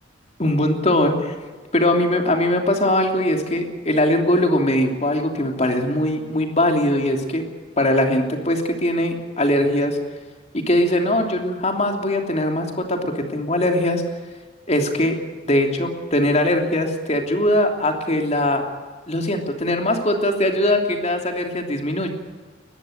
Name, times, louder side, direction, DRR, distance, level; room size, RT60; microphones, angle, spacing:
voice 1, 0.4-1.4 1.7-7.4 7.8-10.0 10.7-14.0 14.7-15.1 15.5-18.6 19.1-22.1, left 1 dB, 35° left, 4 dB, 3.1 m, -21 dB
21.5 x 15.0 x 9.2 m, 1.4 s
head